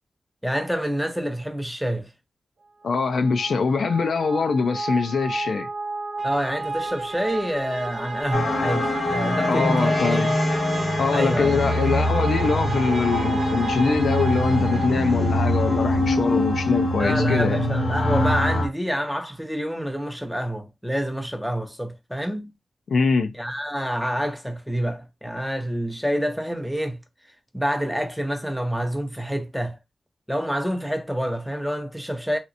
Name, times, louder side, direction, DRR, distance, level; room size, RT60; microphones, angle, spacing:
voice 1, 0.4-2.1 6.2-10.3 11.1-11.8 17.0-22.5 23.3-27.0 27.5-29.8 30.3-32.4, equal, ahead, 0.6 m, -27 dB
voice 2, 2.8-5.7 9.5-10.3 11.0-17.6 22.9-23.3, left 4 dB, 80° left, 0.5 m, -23 dB
sound 1, 2.8-15.7, right 3 dB, 65° right, 0.6 m, -33 dB
sound 2, 8.3-18.7, left 1 dB, 45° left, 0.7 m, -23 dB
3.2 x 2.9 x 2.5 m
wide cardioid pair, 145°, 0 cm